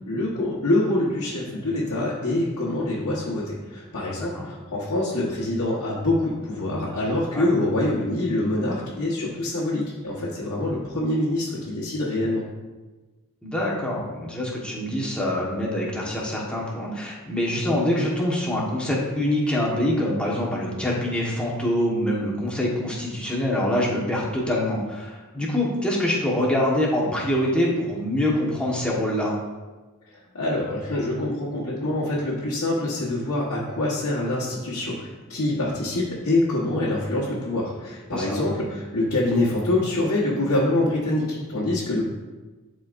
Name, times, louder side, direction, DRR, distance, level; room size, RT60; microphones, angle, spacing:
voice 1, 0.1-12.4 30.3-42.0, left 1 dB, 75° left, -8 dB, 1.3 m, -25 dB
voice 2, 13.4-29.3 38.1-38.3, left 1 dB, 5° left, -4 dB, 1.3 m, -25 dB
10.5 x 4.5 x 2.6 m, 1.2 s
head